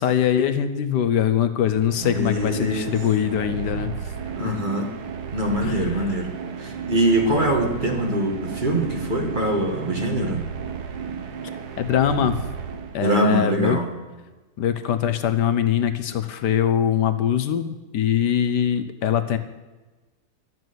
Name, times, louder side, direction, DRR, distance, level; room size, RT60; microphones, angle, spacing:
voice 1, 0.0-3.9 4.4-4.5 5.6-6.1 11.8-12.4 12.9-13.8 14.6-19.4, left 9 dB, 70° left, 10 dB, 1.3 m, -22 dB
sound 1, 1.6-13.3, right 6 dB, 65° right, 1.5 m, -33 dB
voice 2, 2.0-2.9 4.4-4.9 5.3-6.3 6.6-10.4 13.0-13.9, right 1 dB, 30° right, 2 dB, 1.6 m, -23 dB
12.0 x 7.8 x 9.3 m, 1.2 s
omnidirectional pair, 1.9 m